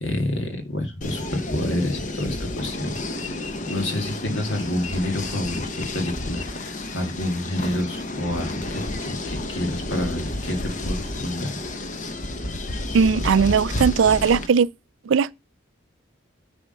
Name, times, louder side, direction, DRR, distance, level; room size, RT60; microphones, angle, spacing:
voice 1, 0.0-11.5, left 1 dB, 65° left, 2.0 m, -28 dB
sound 1, 1.0-14.5, left 2 dB, 40° left, 0.9 m, -31 dB
voice 2, 12.9-14.7 15.1-15.3, right 6 dB, 70° right, 0.4 m, -18 dB
9.6 x 3.5 x 5.4 m
head